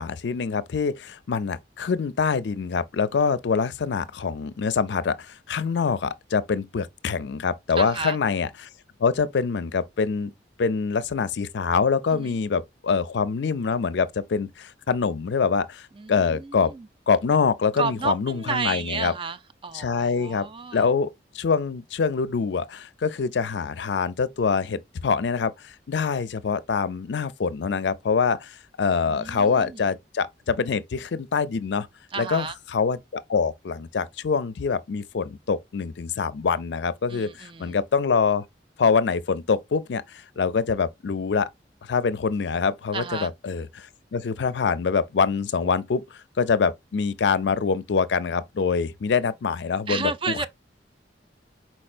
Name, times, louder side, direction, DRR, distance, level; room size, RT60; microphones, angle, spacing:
voice 1, 0.0-8.5 9.0-10.3 10.6-16.7 17.1-19.1 19.7-20.5 20.7-21.1 21.3-31.9 32.2-38.4 38.8-41.5 41.8-50.1, left 5 dB, 70° left, 0.4 m, -25 dB
voice 2, 7.8-8.2 12.1-12.4 16.0-16.9 17.8-20.9 28.9-29.8 32.1-32.6 37.1-37.8 42.9-43.3 49.9-50.5, right 4 dB, 30° right, 0.4 m, -32 dB
4.5 x 4.4 x 2.4 m
head